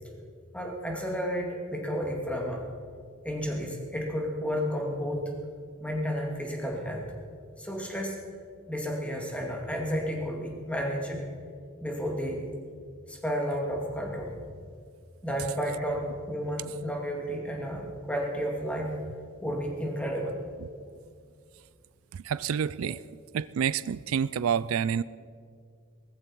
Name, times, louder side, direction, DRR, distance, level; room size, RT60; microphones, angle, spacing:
voice 1, 0.5-2.6 3.2-5.3 5.8-7.1 7.6-8.2 8.7-11.2 11.8-12.4 13.1-14.3 15.2-19.0 19.4-20.4 22.9-23.0, equal, 5° left, -1 dB, 2.4 m, -32 dB
voice 2, 22.3-23.0 23.3-25.0, right 7 dB, 80° right, 18 dB, 0.4 m, -28 dB
19.0 x 14.5 x 4.6 m, 2.1 s
head